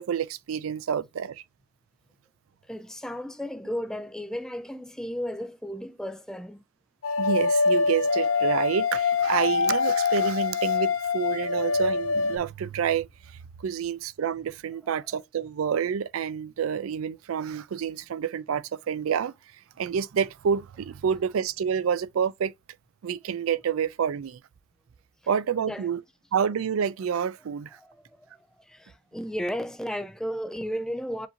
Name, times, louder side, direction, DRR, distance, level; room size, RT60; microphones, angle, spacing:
voice 1, 0.0-1.4 7.2-13.1 13.6-19.3 19.8-22.5 23.0-24.4 25.3-26.0 26.3-27.7, right 7 dB, 90° right, 0.4 m, -28 dB
voice 2, 2.7-6.6 25.6-25.8 27.8-28.0 28.7-31.3, equal, 5° left, 0.3 m, -34 dB
sound 1, 7.0-12.4, left 5 dB, 85° left, 0.5 m, -24 dB
7.0 x 2.6 x 2.8 m
head